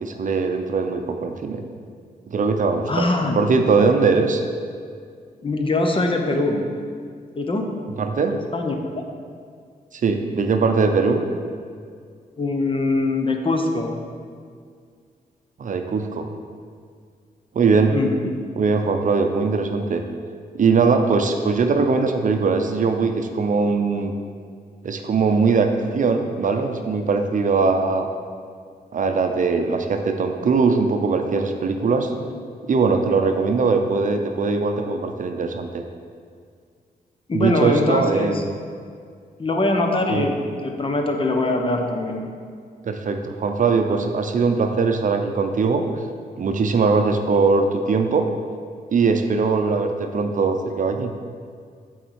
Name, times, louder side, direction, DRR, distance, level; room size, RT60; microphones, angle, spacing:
voice 1, 0.0-1.6 2.3-3.1 3.3-4.4 7.9-8.3 9.9-11.2 15.6-16.3 17.5-18.0 18.6-20.0 20.5-24.1 24.8-25.7 25.9-28.1 28.9-32.1 32.7-35.8 37.3-38.5 40.1-40.3 42.8-45.8 46.4-48.3 48.9-51.1, right 4 dB, 50° right, 5 dB, 0.6 m, -20 dB
voice 2, 2.9-3.4 5.4-6.7 7.4-7.7 8.3-9.0 12.4-14.0 17.9-18.2 32.3-32.4 33.2-33.4 37.3-38.4 39.4-42.3, left 2 dB, 30° left, 3 dB, 0.8 m, -23 dB
8.2 x 4.0 x 4.7 m, 2.1 s
cardioid pair, 75°, 17 cm